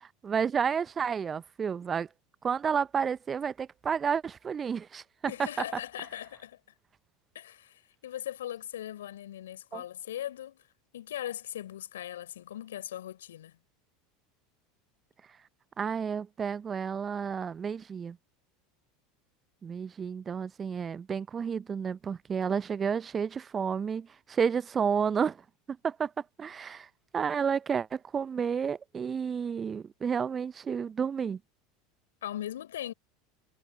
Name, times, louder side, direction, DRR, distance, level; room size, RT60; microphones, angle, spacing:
voice 1, 0.0-2.1 2.4-5.0 9.7-9.8 15.8-18.2 19.6-25.4 25.7-26.1 26.4-26.9 27.1-31.4, right 6 dB, 30° right, 0.7 m, -31 dB
voice 2, 5.3-6.6 7.3-10.7 10.9-13.6 32.2-32.9, left 12 dB, 75° left, 3.9 m, -39 dB
figure-of-eight pair, 75°, 0 cm